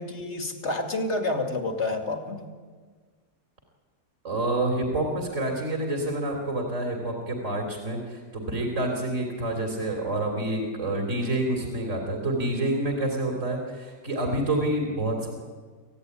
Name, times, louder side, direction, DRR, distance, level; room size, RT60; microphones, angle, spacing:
voice 1, 0.0-2.4, left 2 dB, 45° left, 4 dB, 2.7 m, -29 dB
voice 2, 4.2-15.3, right 1 dB, 50° right, 1 dB, 3.9 m, -28 dB
26.0 x 16.5 x 9.7 m, 1.5 s
omnidirectional pair, 1.6 m